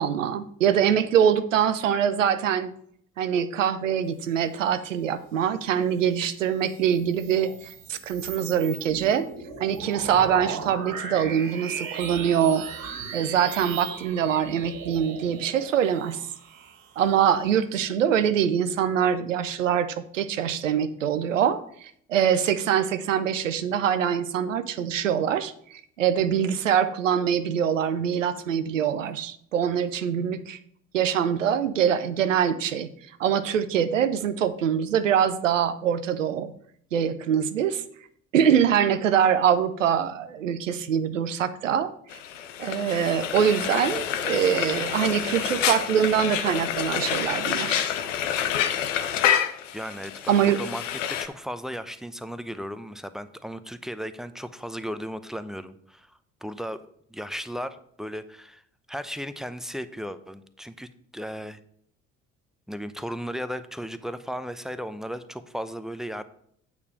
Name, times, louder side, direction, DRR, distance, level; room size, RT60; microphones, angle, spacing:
voice 1, 0.0-2.7 3.2-9.3 9.6-12.6 13.1-16.2 17.0-30.6 30.9-32.9 33.2-36.5 36.9-37.8 38.3-41.9 42.6-47.8 50.3-50.6, right 8 dB, 85° right, 11 dB, 0.6 m, -24 dB
sound 1, 6.5-17.4, right 6 dB, 60° right, 2.3 m, -38 dB
Frying (food), 42.1-51.3, left 9 dB, 80° left, 0.8 m, -28 dB
voice 2, 49.7-56.8 57.1-58.6 58.9-61.6 62.7-66.2, equal, ahead, 11 dB, 0.7 m, -35 dB
8.4 x 4.8 x 6.7 m, 0.65 s
figure-of-eight pair, 50°, 37 cm